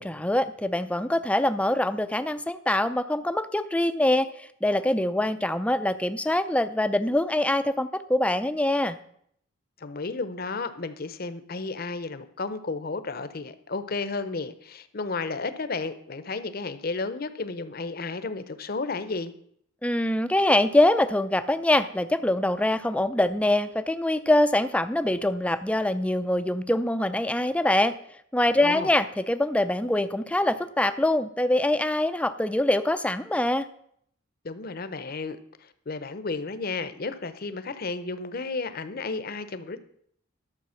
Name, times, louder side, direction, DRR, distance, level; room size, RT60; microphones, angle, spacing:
voice 1, 0.0-9.0 19.8-27.9 28.3-33.7, left 1 dB, 5° left, 11 dB, 0.5 m, -24 dB
voice 2, 9.8-19.3 28.6-28.9 34.4-39.8, left 3 dB, 50° left, 12 dB, 0.8 m, -33 dB
12.5 x 6.9 x 5.7 m, 0.68 s
head